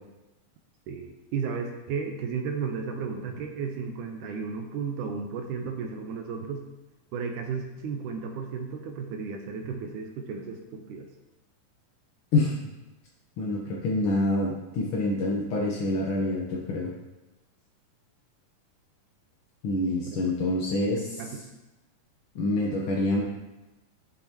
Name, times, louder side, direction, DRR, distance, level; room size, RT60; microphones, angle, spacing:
voice 1, 0.9-6.6 7.1-11.1 20.1-20.2 20.6-20.7 21.2-21.4, right 5 dB, 75° right, 3 dB, 2.1 m, -34 dB
voice 2, 13.4-16.9 19.6-21.2 22.3-23.2, left 2 dB, 65° left, -4 dB, 1.4 m, -26 dB
11.5 x 8.1 x 2.9 m, 1.0 s
omnidirectional pair, 3.9 m